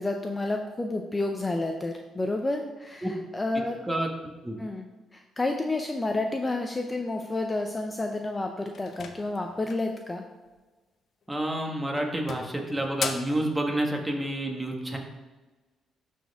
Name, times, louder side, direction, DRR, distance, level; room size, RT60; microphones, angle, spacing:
voice 1, 0.0-3.1 3.3-3.8 4.6-10.2, left 2 dB, 20° left, 4 dB, 0.6 m, -30 dB
sound 1, 8.7-10.0 11.2-11.6 12.0-13.4, left 6 dB, 60° left, 0.7 m, -37 dB
voice 2, 11.3-15.0, right 1 dB, 15° right, 1 dB, 1.5 m, -29 dB
12.0 x 4.4 x 3.6 m, 1.2 s
cardioid pair, 90°, 0 cm